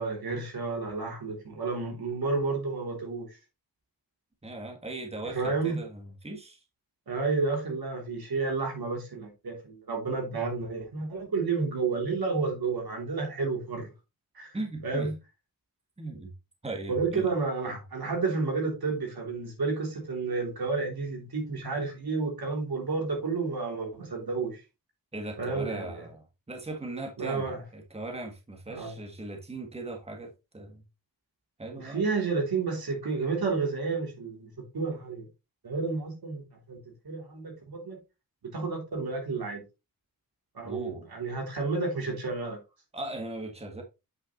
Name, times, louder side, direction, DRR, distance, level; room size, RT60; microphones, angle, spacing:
voice 1, 0.0-3.4 5.3-5.8 7.1-13.9 14.3-14.6 14.8-15.1 16.9-24.6 25.4-26.1 27.2-27.6 28.7-28.9 31.7-35.3 35.6-36.8 37.0-38.0 38.5-39.6 40.5-42.6, right 4 dB, 90° right, 3.1 m, -31 dB
voice 2, 4.4-6.6 14.5-15.1 16.0-16.3 16.6-17.3 17.7-17.8 25.1-30.8 31.6-32.1 40.6-41.1 42.9-43.8, right 2 dB, 15° right, 1.6 m, -39 dB
7.9 x 6.0 x 3.0 m
wide cardioid pair, 135°, 36 cm